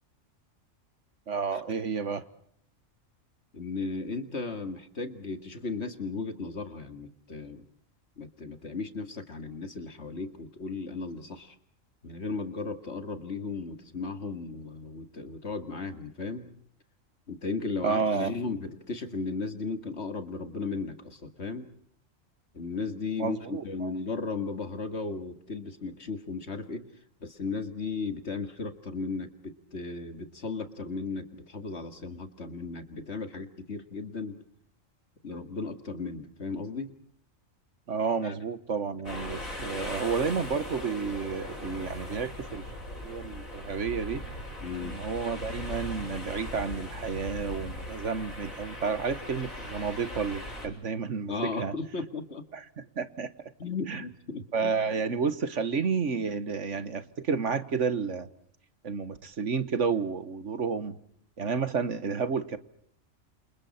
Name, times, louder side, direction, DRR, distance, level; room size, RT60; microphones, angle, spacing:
voice 1, 1.3-2.2 17.8-18.3 23.2-23.9 37.9-42.6 43.0-44.2 44.8-51.7 52.5-53.5 53.9-54.0 54.5-58.3 58.8-61.0 61.4-62.6, right 5 dB, 65° right, 12 dB, 1.7 m, -31 dB
voice 2, 3.5-7.7 8.2-11.6 12.0-16.6 17.3-21.7 22.5-26.9 27.2-34.4 35.2-36.9 38.2-38.3 44.6-45.0 51.3-52.4 53.6-54.7, left 4 dB, 55° left, 8 dB, 2.3 m, -35 dB
sound 1, 39.0-50.7, left 1 dB, 90° left, 7.1 m, -39 dB
29.0 x 28.0 x 4.3 m, 0.65 s
omnidirectional pair, 1.4 m